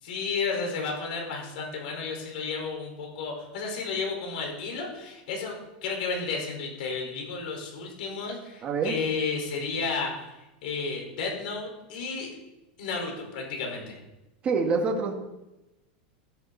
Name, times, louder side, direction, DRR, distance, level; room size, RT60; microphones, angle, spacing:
voice 1, 0.0-5.5 5.8-10.3 10.6-12.3 12.8-14.0, left 4 dB, 70° left, 1 dB, 4.8 m, -32 dB
voice 2, 8.6-8.9 14.4-15.1, right 4 dB, 25° right, 1 dB, 1.9 m, -25 dB
13.0 x 11.5 x 4.2 m, 0.98 s
supercardioid pair, 155°, 5 cm